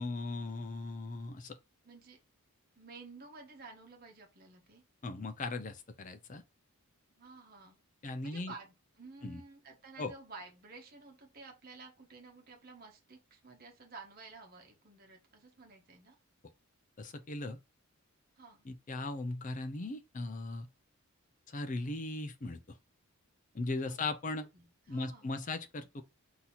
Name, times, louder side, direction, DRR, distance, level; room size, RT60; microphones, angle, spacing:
voice 1, 0.0-1.6 5.0-6.4 8.0-8.5 9.2-9.4 10.0-10.1 17.0-17.6 18.6-20.7 21.5-22.8 23.5-24.5 24.9-26.0, left 2 dB, 35° left, 0.5 m, -38 dB
voice 2, 1.8-2.2 2.7-4.8 7.1-7.8 8.2-16.2 18.4-18.7 23.9-24.0 24.5-25.5, right 3 dB, 45° right, 1.1 m, -52 dB
4.0 x 2.8 x 4.2 m
head